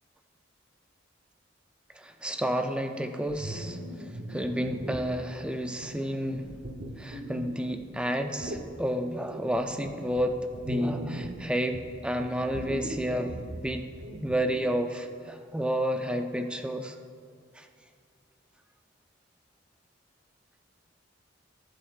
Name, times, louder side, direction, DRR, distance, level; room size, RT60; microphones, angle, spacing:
voice 1, 2.0-3.8 4.3-6.4 7.0-13.8 14.2-16.9 17.6-17.7, equal, 5° right, 5 dB, 0.4 m, -31 dB
sound 1, 3.3-5.2 5.8-7.9 8.4-8.7 9.3-11.4 11.7-14.6, equal, 60° right, 1.0 m, -39 dB
18.0 x 7.5 x 2.4 m, 2.3 s
head